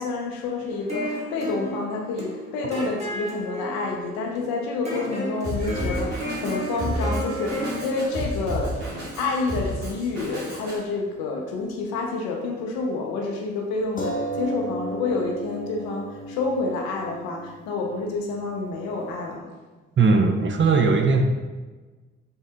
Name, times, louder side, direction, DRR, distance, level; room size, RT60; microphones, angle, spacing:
voice 1, 0.0-8.8 9.2-19.5, left 3 dB, 85° left, 1 dB, 0.6 m, -28 dB
sound 1, 0.7-9.9, equal, 20° right, 1.5 m, -34 dB
Drum kit, 5.4-10.8, equal, 90° right, 1.1 m, -31 dB
sound 2, 6.5-10.4 10.6-10.7 14.0-19.2, right 1 dB, 25° left, 0.8 m, -37 dB
voice 2, 20.0-21.2, right 4 dB, 35° right, 4 dB, 0.5 m, -19 dB
3.6 x 2.6 x 3.4 m, 1.3 s
hypercardioid pair, 40°, 33 cm